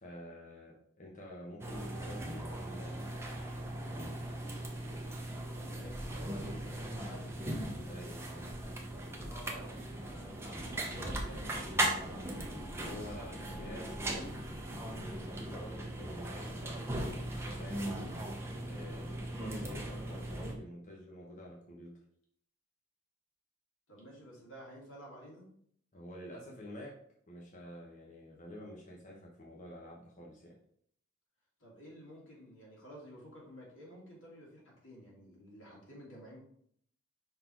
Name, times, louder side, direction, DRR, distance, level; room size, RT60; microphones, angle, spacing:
voice 1, 0.0-3.0 7.8-8.4 12.7-14.3 14.9-18.1 18.7-21.9 25.9-27.0 27.3-30.5, left 1 dB, 40° left, -2 dB, 1.0 m, -48 dB
sound 1, 1.6-20.5, right 1 dB, 15° right, 0.9 m, -39 dB
voice 2, 5.5-7.4 9.2-12.3 23.9-25.5 31.6-36.4, equal, 85° left, -3 dB, 2.5 m, -52 dB
5.4 x 4.2 x 4.4 m, 0.65 s
head